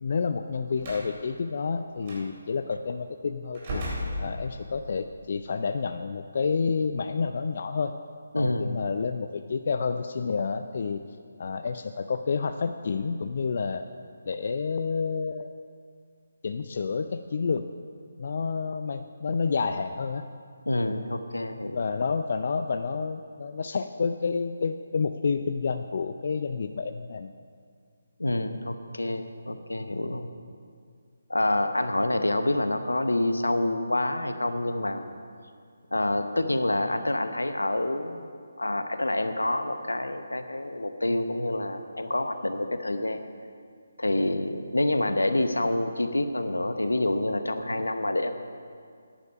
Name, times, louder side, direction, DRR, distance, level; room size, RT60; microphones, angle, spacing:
voice 1, 0.0-3.8 4.2-8.0 8.4-11.0 11.4-13.8 14.3-15.5 16.4-17.7 18.2-20.3 21.7-27.3, left 5 dB, 50° left, 8 dB, 0.4 m, -29 dB
Slam, 0.8-1.1 2.0-2.2 3.5-4.8, left 1 dB, 35° right, 3.9 m, -34 dB
voice 2, 8.3-8.8 20.7-21.8 28.2-30.3 31.3-35.1 35.9-38.3 38.6-43.2 44.0-48.3, left 1 dB, 80° left, 9 dB, 0.9 m, -27 dB
13.5 x 10.0 x 5.5 m, 2.2 s
figure-of-eight pair, 150°, 0 cm